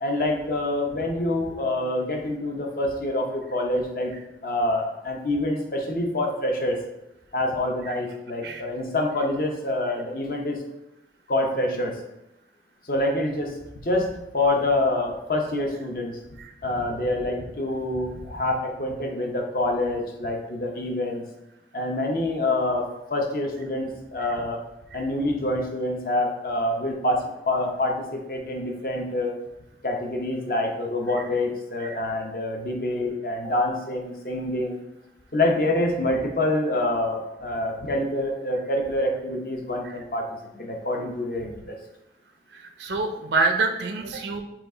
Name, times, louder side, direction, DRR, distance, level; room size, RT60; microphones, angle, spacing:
voice 1, 0.0-4.1 4.4-6.8 7.3-10.6 11.3-12.0 12.8-13.5 13.8-16.2 16.6-21.2 21.7-24.6 24.9-29.3 29.8-34.8 35.3-41.8, left 1 dB, 55° left, 1 dB, 0.7 m, -26 dB
voice 2, 42.8-44.4, right 3 dB, 85° right, 5 dB, 0.5 m, -25 dB
5.8 x 2.4 x 3.8 m, 0.90 s
head